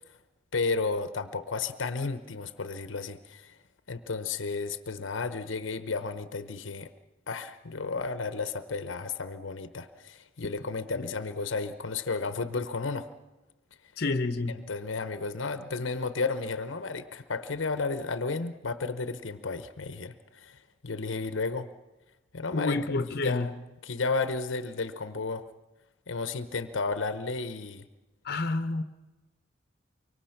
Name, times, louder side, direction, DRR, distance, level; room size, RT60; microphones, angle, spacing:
voice 1, 0.5-3.5 3.9-6.9 7.3-13.1 14.5-21.7 22.3-23.5 23.8-25.4 26.1-27.9, left 4 dB, 85° left, 11 dB, 1.0 m, -33 dB
voice 2, 14.0-14.6 22.5-23.5 28.2-28.8, left 3 dB, 55° left, 10 dB, 1.0 m, -29 dB
25.0 x 23.5 x 5.9 m, 1.1 s
head